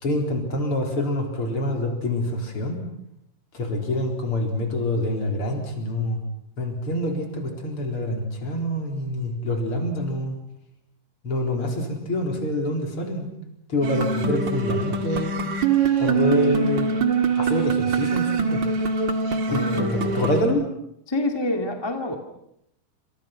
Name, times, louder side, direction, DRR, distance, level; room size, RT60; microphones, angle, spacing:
voice 1, 0.0-2.8 3.5-6.2 6.6-10.4 11.2-13.3 13.7-15.3 16.0-16.9 17.4-18.6 19.5-20.6, left 1 dB, 40° left, 3 dB, 4.9 m, -26 dB
sound 1, 13.8-20.4, right 5 dB, 40° right, 2.2 m, -23 dB
voice 2, 19.5-20.3 21.1-22.2, left 1 dB, 10° left, 4 dB, 1.9 m, -27 dB
28.5 x 27.5 x 6.0 m, 0.76 s
omnidirectional pair, 3.9 m